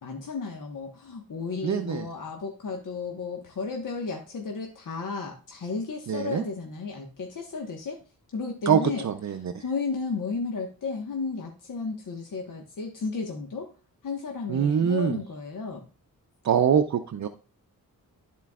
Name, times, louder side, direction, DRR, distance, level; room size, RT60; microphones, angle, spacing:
voice 1, 0.0-8.0 8.3-9.1 9.6-13.7 14.0-15.9, left 4 dB, 60° left, 1 dB, 1.3 m, -33 dB
voice 2, 1.6-2.1 6.1-6.4 8.7-9.6 14.5-15.2 16.4-17.3, right 8 dB, 50° right, 7 dB, 0.6 m, -24 dB
13.0 x 4.5 x 2.4 m, 0.35 s
cardioid pair, 70°, 35 cm